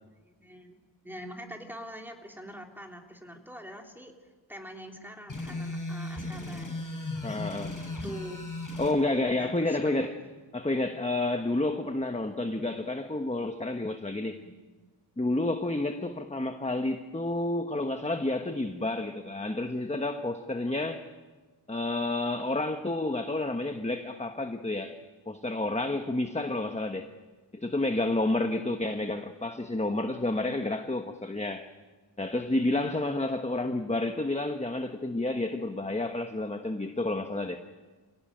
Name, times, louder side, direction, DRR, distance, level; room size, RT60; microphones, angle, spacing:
voice 1, 0.2-0.8 1.0-4.1 4.5-6.8 7.7-8.4 9.3-9.8 10.2-10.3 14.4-14.5 25.8-26.0, equal, 5° right, 2 dB, 3.4 m, -44 dB
sound 1, 5.3-9.0, left 2 dB, 45° left, 7.0 m, -36 dB
voice 2, 7.2-7.8 8.8-10.2 10.5-14.4 15.2-21.0 21.7-24.9 25.3-27.1 27.5-31.7 32.2-37.6, left 2 dB, 15° left, 6 dB, 1.2 m, -30 dB
26.5 x 17.5 x 9.1 m, 1.3 s
wide cardioid pair, 85°, 44 cm